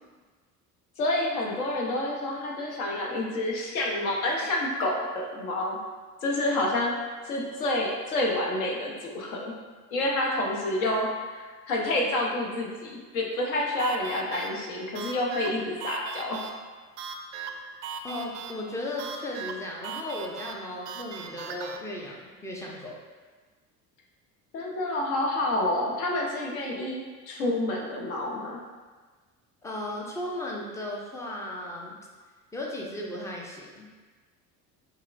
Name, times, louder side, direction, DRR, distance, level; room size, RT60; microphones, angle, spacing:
voice 1, 1.0-5.8 6.2-6.9 7.2-9.5 9.9-16.4 24.5-28.6, left 1 dB, 65° left, -1 dB, 0.9 m, -28 dB
sound 1, 13.8-21.8, right 5 dB, 50° right, 0.4 m, -39 dB
voice 2, 18.0-23.0 29.6-32.0 32.5-33.9, left 1 dB, 5° left, -2 dB, 0.4 m, -36 dB
5.5 x 2.4 x 2.5 m, 1.4 s
figure-of-eight pair, 65°, 47 cm